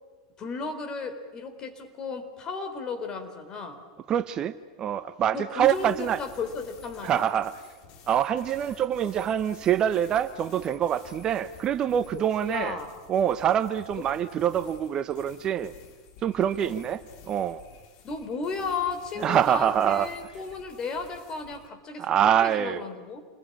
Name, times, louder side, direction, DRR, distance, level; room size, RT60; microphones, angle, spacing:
voice 1, 0.4-3.8 5.3-7.3 12.1-12.9 14.0-14.1 16.6-16.8 18.0-22.1 22.4-23.2, left 4 dB, 30° left, 4.1 m, -34 dB
voice 2, 4.1-6.2 7.0-7.5 8.1-12.8 13.1-15.7 16.2-17.6 19.2-20.1 22.0-22.8, right 9 dB, 35° right, 0.9 m, -25 dB
sound 1, 5.6-21.7, left 7 dB, 50° left, 3.1 m, -52 dB
28.0 x 21.0 x 8.8 m
figure-of-eight pair, 90°, 2 cm